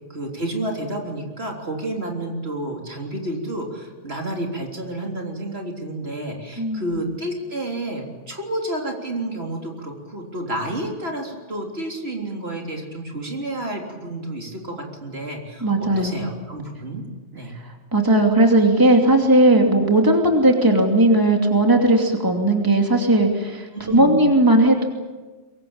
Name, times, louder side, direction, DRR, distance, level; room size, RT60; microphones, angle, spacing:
voice 1, 0.1-17.0 17.3-17.6 23.7-24.2, right 1 dB, 60° right, 1 dB, 3.9 m, -30 dB
voice 2, 6.6-6.9 15.6-16.2 17.9-24.9, right 1 dB, 20° right, 2 dB, 2.7 m, -17 dB
24.0 x 22.0 x 8.8 m, 1.3 s
omnidirectional pair, 1.2 m